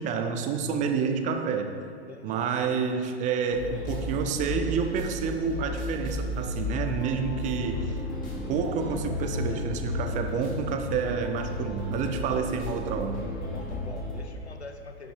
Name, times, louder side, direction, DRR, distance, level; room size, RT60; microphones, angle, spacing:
voice 1, 0.0-1.7 2.2-7.9 8.5-13.3, right 6 dB, 25° right, 6 dB, 0.6 m, -29 dB
voice 2, 2.1-2.5 13.5-15.1, left 3 dB, 90° left, 6 dB, 0.8 m, -45 dB
sound 1, 3.5-14.2, left 2 dB, 25° left, 2.1 m, -33 dB
10.5 x 5.2 x 5.0 m, 2.2 s
figure-of-eight pair, 100°, 32 cm